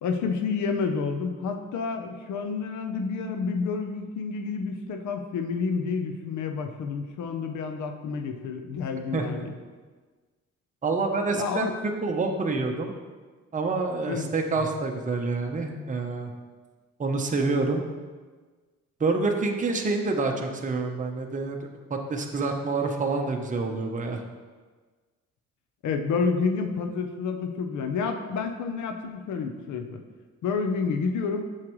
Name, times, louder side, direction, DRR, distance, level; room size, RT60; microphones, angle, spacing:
voice 1, 0.0-9.5 11.3-11.7 14.1-14.6 25.8-30.0 30.4-31.5, left 5 dB, 75° left, 6 dB, 0.7 m, -29 dB
voice 2, 9.1-9.5 10.8-11.7 12.0-12.9 13.5-16.3 17.0-17.8 19.0-21.6 21.9-24.2, right 3 dB, 25° right, 2 dB, 0.8 m, -27 dB
7.4 x 6.4 x 3.1 m, 1.4 s
cardioid pair, 90°, 30 cm